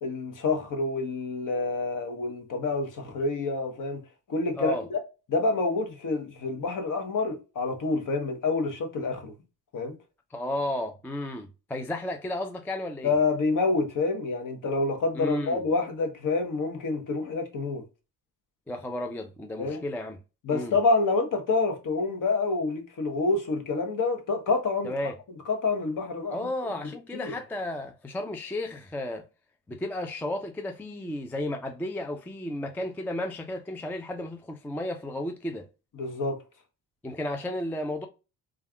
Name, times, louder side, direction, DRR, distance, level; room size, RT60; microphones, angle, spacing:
voice 1, 0.0-4.0 4.3-5.0 5.3-9.3 9.7-9.9 13.0-17.8 19.6-19.8 20.4-24.9 25.5-26.5 27.1-27.3 36.0-36.4, left 3 dB, 45° left, 1.0 m, -27 dB
voice 2, 10.3-13.1 15.1-15.6 18.7-20.2 20.5-20.7 24.8-25.1 26.3-29.2 29.7-35.7 37.0-38.1, left 1 dB, 5° left, 0.3 m, -33 dB
3.3 x 2.3 x 2.3 m
supercardioid pair, 65°, 45 cm